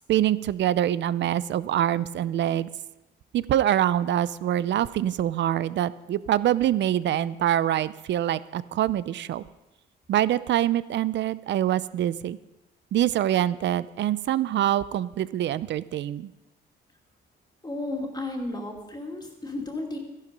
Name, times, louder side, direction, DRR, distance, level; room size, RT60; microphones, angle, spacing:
voice 1, 0.1-2.7 3.3-9.4 10.1-12.4 12.9-16.3, right 12 dB, 65° right, 17 dB, 0.5 m, -25 dB
voice 2, 17.6-20.0, left 2 dB, 20° left, 0 dB, 2.6 m, -33 dB
14.0 x 11.5 x 5.2 m, 1.0 s
cardioid pair, 90°, 20 cm